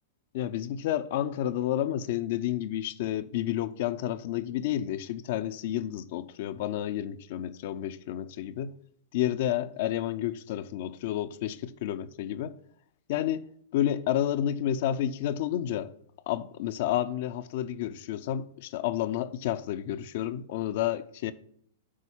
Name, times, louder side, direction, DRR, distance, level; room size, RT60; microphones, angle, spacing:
voice 1, 0.3-8.7 9.1-12.6 13.1-13.4 13.7-15.9 16.3-21.3, left 11 dB, 55° left, 0.6 m, -30 dB
8.5 x 4.1 x 7.2 m
hypercardioid pair, 105°, 0 cm